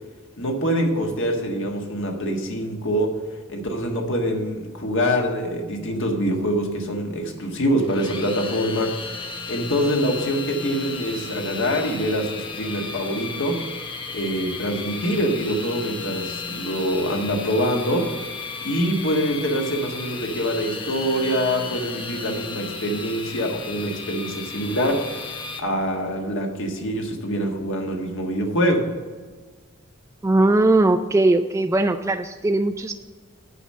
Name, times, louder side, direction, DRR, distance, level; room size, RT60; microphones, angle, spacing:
voice 1, 0.4-3.2 3.5-13.6 14.1-18.1 18.6-25.3 25.6-28.9, equal, 65° left, 2 dB, 1.6 m, -25 dB
sound 1, 7.8-25.6, left 4 dB, 25° left, 0.9 m, -34 dB
voice 2, 30.2-32.9, right 2 dB, 15° right, 7 dB, 0.3 m, -19 dB
8.3 x 5.6 x 7.5 m, 1.4 s
head